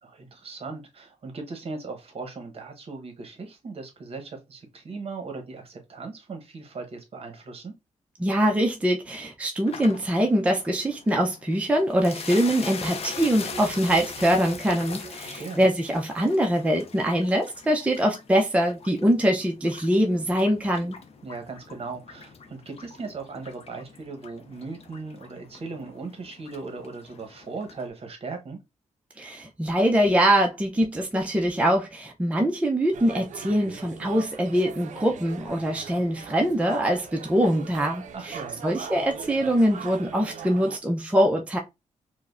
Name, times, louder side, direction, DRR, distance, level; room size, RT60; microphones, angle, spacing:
voice 1, 0.0-7.7 15.3-15.6 21.2-28.6 38.1-38.6, right 4 dB, 50° right, 0.9 m, -38 dB
voice 2, 8.2-21.0 29.2-38.4 38.6-41.6, equal, 10° right, 0.5 m, -23 dB
sound 1, 9.7-27.9, left 5 dB, 50° left, 0.5 m, -42 dB
sound 2, 11.8-16.7, right 3 dB, 10° left, 1.7 m, -45 dB
sound 3, 32.9-40.8, right 7 dB, 70° right, 0.4 m, -40 dB
4.7 x 2.1 x 2.4 m
cardioid pair, 110°, 13 cm